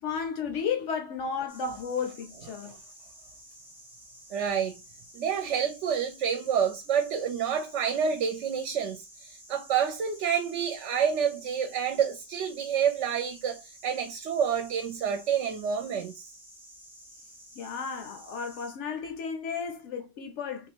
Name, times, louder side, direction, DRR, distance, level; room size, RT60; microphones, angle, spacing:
voice 1, 0.0-2.8 17.6-20.7, left 6 dB, 90° left, 0.9 m, -33 dB
sound 1, 1.5-18.7, equal, ahead, 1.2 m, -52 dB
voice 2, 4.3-4.8 5.1-16.3, right 7 dB, 80° right, 0.9 m, -28 dB
3.6 x 2.5 x 2.9 m
omnidirectional pair, 1.2 m